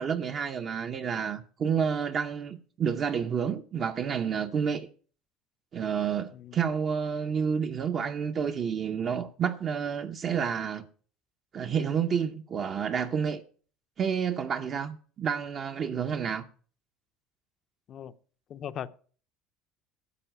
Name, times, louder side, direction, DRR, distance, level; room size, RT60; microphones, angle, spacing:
voice 1, 0.0-4.9 5.7-10.9 11.5-13.4 14.0-16.5, right 7 dB, 30° right, 0.6 m, -29 dB
voice 2, 18.5-18.9, left 9 dB, 35° left, 0.5 m, -38 dB
12.5 x 5.2 x 8.8 m
cardioid pair, 165°, 0 cm